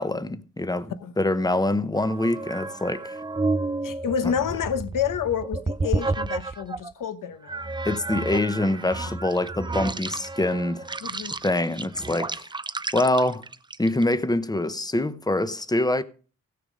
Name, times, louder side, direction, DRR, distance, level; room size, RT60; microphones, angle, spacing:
voice 1, 0.0-3.2 7.8-10.9 11.4-12.5 12.9-13.4 13.8-16.0, left 1 dB, 10° left, 0.8 m, -25 dB
sound 1, 2.0-6.9 7.5-14.1, right 3 dB, 15° right, 0.4 m, -31 dB
voice 2, 3.8-7.7 9.0-9.1 11.0-11.3, left 8 dB, 75° left, 1.0 m, -29 dB
16.5 x 6.8 x 5.2 m
wide cardioid pair, 115°, 33 cm